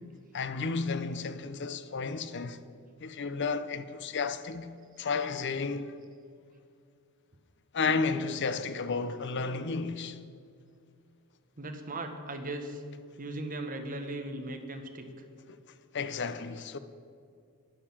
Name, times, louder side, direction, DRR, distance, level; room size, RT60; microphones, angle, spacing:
voice 1, 0.3-2.6 3.0-5.9 7.7-10.2 15.5-15.6 15.9-16.8, left 4 dB, 50° left, 0.6 m, -32 dB
voice 2, 11.6-12.8 13.2-15.0, right 2 dB, 40° right, 1.3 m, -38 dB
11.0 x 10.0 x 7.2 m
head